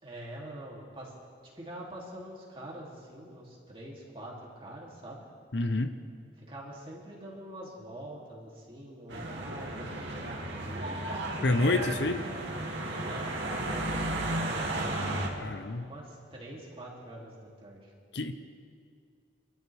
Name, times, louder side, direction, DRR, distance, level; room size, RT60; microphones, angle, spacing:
voice 1, 0.0-1.1 1.5-5.2 6.4-10.4 10.6-11.0 13.0-14.8 15.8-17.9, right 1 dB, 30° right, -4 dB, 3.0 m, -45 dB
voice 2, 5.5-5.9 11.4-12.2 15.4-15.9 18.1-18.3, left 2 dB, 65° left, 9 dB, 0.8 m, -28 dB
sound 1, 9.1-15.3, right 1 dB, 75° right, 2.4 m, -34 dB
27.5 x 13.0 x 3.5 m, 2.2 s
head